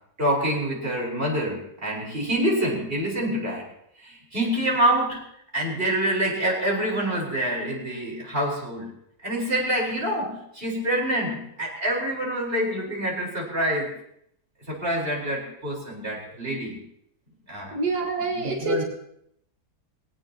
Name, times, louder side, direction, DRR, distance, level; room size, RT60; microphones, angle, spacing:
voice 1, 0.2-3.6 4.0-5.2 5.5-8.9 9.2-13.9 14.7-16.8 17.5-17.8 18.3-18.8, right 1 dB, 35° right, -2 dB, 4.8 m, -26 dB
voice 2, 17.7-18.8, right 3 dB, 80° right, 0 dB, 2.2 m, -27 dB
22.0 x 18.0 x 2.9 m, 0.72 s
omnidirectional pair, 1.7 m